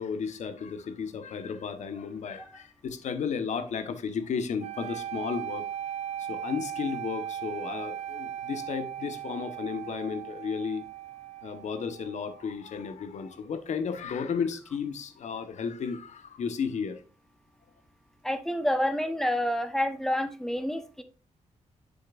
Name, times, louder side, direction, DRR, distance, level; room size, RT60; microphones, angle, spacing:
voice 1, 0.0-5.6 6.3-10.8 11.4-17.0, left 6 dB, 75° left, 1.1 m, -33 dB
sound 1, 4.6-12.7, right 10 dB, 65° right, 0.8 m, -38 dB
voice 2, 18.2-21.0, left 1 dB, 5° left, 0.9 m, -28 dB
7.6 x 6.9 x 2.5 m
wide cardioid pair, 145°, 12 cm